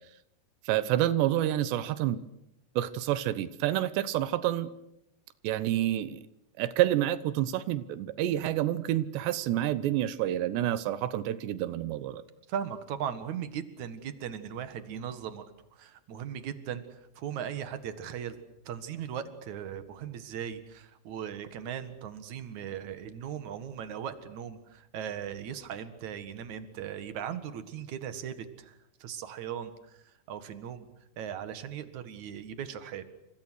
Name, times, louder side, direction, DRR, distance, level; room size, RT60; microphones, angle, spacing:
voice 1, 0.7-2.2 2.8-4.7 5.4-6.2 6.6-12.2, right 13 dB, 90° right, 15 dB, 3.3 m, -28 dB
voice 2, 12.5-15.5 15.7-18.4 18.7-30.9 31.2-33.0, right 9 dB, 55° right, 10 dB, 2.7 m, -38 dB
29.5 x 25.5 x 6.4 m, 0.81 s
omnidirectional pair, 4.8 m